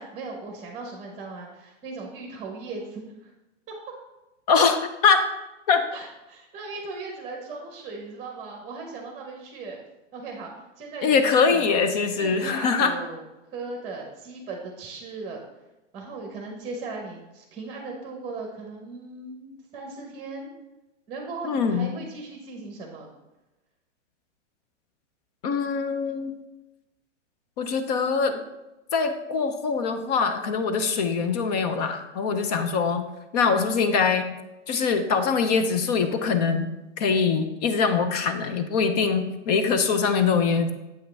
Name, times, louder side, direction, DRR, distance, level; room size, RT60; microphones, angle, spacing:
voice 1, 0.0-3.3 5.9-9.8 10.1-10.5 10.8-11.8 12.2-13.2 13.5-15.4 15.9-20.5 21.1-23.1 32.6-32.8, right 3 dB, 15° right, 1 dB, 0.9 m, -38 dB
voice 2, 4.5-5.3 5.7-5.8 11.0-12.9 21.4-21.9 25.4-26.3 27.6-28.4 28.9-33.0 33.3-34.3 34.7-36.7 37.0-40.7, left 5 dB, 35° left, 8 dB, 0.6 m, -23 dB
7.8 x 5.6 x 3.3 m, 0.99 s
hypercardioid pair, 145°, 37 cm